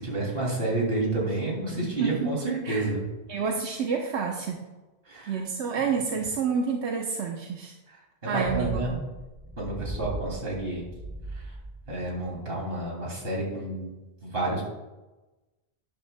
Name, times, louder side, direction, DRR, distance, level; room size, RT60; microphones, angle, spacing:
voice 1, 0.0-3.0 5.1-5.4 7.9-8.0 8.2-9.0 9.6-10.8 11.3-11.5 11.9-13.9 14.2-14.6, right 2 dB, 60° right, -2 dB, 3.0 m, -30 dB
voice 2, 1.8-2.3 2.6-2.9 3.3-4.6 5.3-7.7 8.3-9.0, right 5 dB, 85° right, 1 dB, 1.1 m, -29 dB
sound 1, 8.4-11.9 12.2-12.3, right 1 dB, ahead, 2.4 m, -38 dB
12.0 x 10.0 x 2.2 m, 1.1 s
omnidirectional pair, 1.1 m